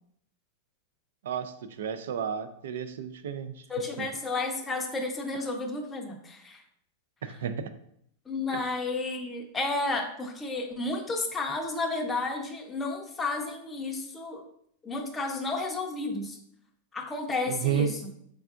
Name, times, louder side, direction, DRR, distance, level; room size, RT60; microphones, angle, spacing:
voice 1, 1.2-3.6 7.2-7.7 8.5-8.6 17.5-17.9, right 8 dB, 85° right, 11 dB, 0.4 m, -32 dB
voice 2, 3.7-6.6 8.3-14.4 14.8-16.4 16.9-18.0, left 3 dB, 10° left, 2 dB, 0.6 m, -32 dB
4.5 x 3.5 x 2.4 m, 0.70 s
supercardioid pair, 145°, 0 cm